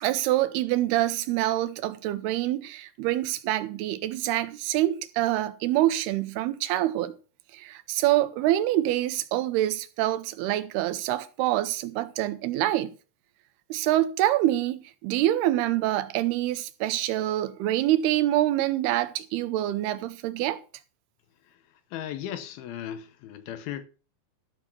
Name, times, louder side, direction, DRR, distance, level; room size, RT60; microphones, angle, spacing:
voice 1, 0.0-7.1 7.5-12.9 13.7-20.6, right 14 dB, 85° right, 2.8 m, -26 dB
voice 2, 21.9-23.9, left 10 dB, 75° left, 2.7 m, -36 dB
12.5 x 6.4 x 6.0 m
omnidirectional pair, 4.5 m